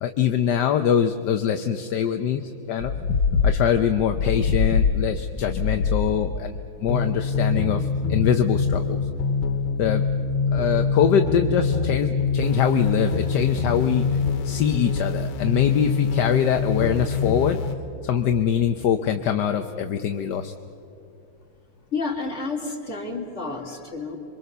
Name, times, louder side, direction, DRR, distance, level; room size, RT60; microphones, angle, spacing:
voice 1, 0.0-2.9 3.4-9.0 9.8-10.0 10.5-14.2 14.4-17.6 18.0-20.5, left 8 dB, 60° left, 7 dB, 1.2 m, -23 dB
sound 1, 2.8-17.7, left 4 dB, 85° left, 2.2 m, -24 dB
voice 2, 21.9-24.2, left 3 dB, 30° left, 0 dB, 3.2 m, -30 dB
28.0 x 23.5 x 6.8 m, 2.7 s
omnidirectional pair, 2.4 m